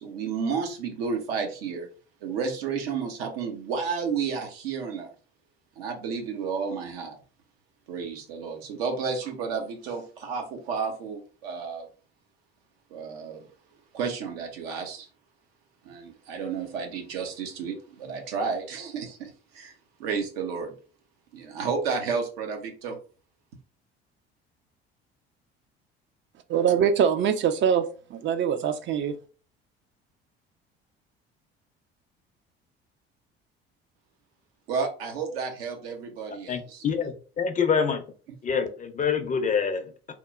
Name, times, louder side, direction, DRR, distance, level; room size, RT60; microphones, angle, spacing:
voice 1, 0.0-1.9 2.2-5.1 5.8-7.2 7.9-11.9 12.9-13.5 13.9-15.1 15.8-19.7 20.0-20.7 21.3-23.0 34.7-37.1, right 5 dB, 75° right, 0.7 m, -32 dB
voice 2, 26.5-29.2, right 8 dB, 40° right, 0.4 m, -23 dB
voice 3, 36.5-38.0 38.4-40.1, left 6 dB, 25° left, 0.5 m, -26 dB
2.9 x 2.0 x 2.3 m
hypercardioid pair, 60°, 30 cm